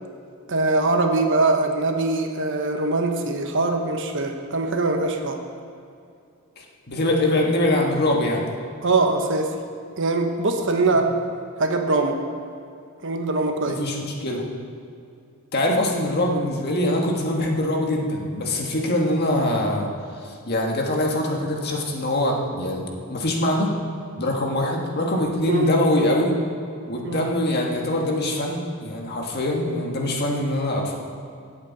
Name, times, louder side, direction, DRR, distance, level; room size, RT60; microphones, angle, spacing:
voice 1, 0.5-5.4 8.8-9.5 10.0-11.1 11.6-12.2 13.0-13.8 25.5-25.7 27.0-27.3, right 3 dB, 60° right, 4 dB, 1.1 m, -22 dB
voice 2, 6.6-8.4 13.7-14.4 15.5-19.9 20.2-22.8 23.1-23.7 24.2-26.3 26.9-31.0, left 1 dB, 50° left, 0 dB, 1.6 m, -23 dB
17.0 x 8.2 x 4.1 m, 2.5 s
head